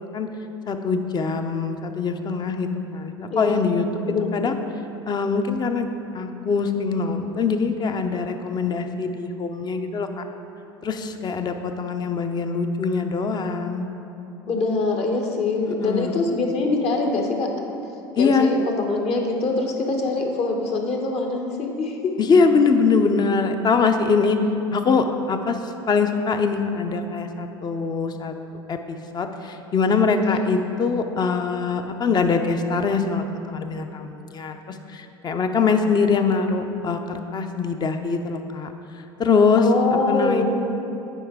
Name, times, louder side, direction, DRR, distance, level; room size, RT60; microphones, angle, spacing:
voice 1, 0.7-4.5 5.1-5.9 6.1-10.1 10.8-13.9 15.6-16.3 18.2-18.5 22.2-24.4 24.7-25.6 25.9-28.4 28.7-34.6 34.9-38.7 39.2-39.6 40.1-40.4, left 5 dB, 30° left, 7 dB, 0.6 m, -23 dB
voice 2, 3.3-3.6 4.0-4.7 14.5-17.5 18.2-22.0 30.2-30.4 39.6-40.4, left 3 dB, 50° left, 2 dB, 1.1 m, -24 dB
9.1 x 4.6 x 3.7 m, 2.8 s
hypercardioid pair, 80°, 14 cm